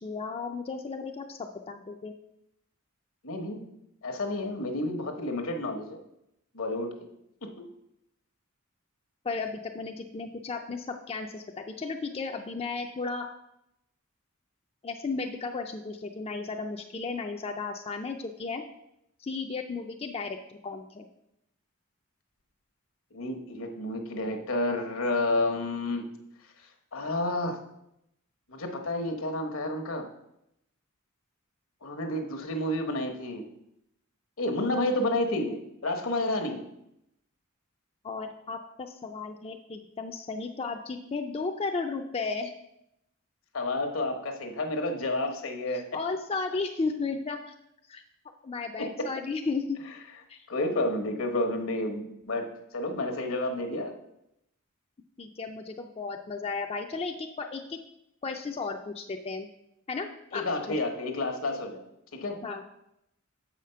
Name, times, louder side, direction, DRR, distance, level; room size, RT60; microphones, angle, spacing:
voice 1, 0.0-2.1 9.2-13.3 14.8-18.6 19.2-21.1 38.0-42.5 45.9-47.5 47.9-48.0 48.4-49.8 50.3-50.5 55.2-57.8 58.2-59.5 59.9-60.7 62.4-62.6, left 4 dB, 30° left, 4 dB, 0.4 m, -34 dB
voice 2, 3.2-3.6 4.0-6.0 6.5-6.9 7.4-7.6 23.1-26.0 26.9-27.6 28.5-30.1 31.8-33.4 34.4-36.6 43.5-45.8 48.8-49.1 50.5-53.9 60.3-61.8 62.1-62.4, left 2 dB, 75° left, 5 dB, 1.1 m, -30 dB
7.0 x 5.0 x 5.6 m, 0.82 s
head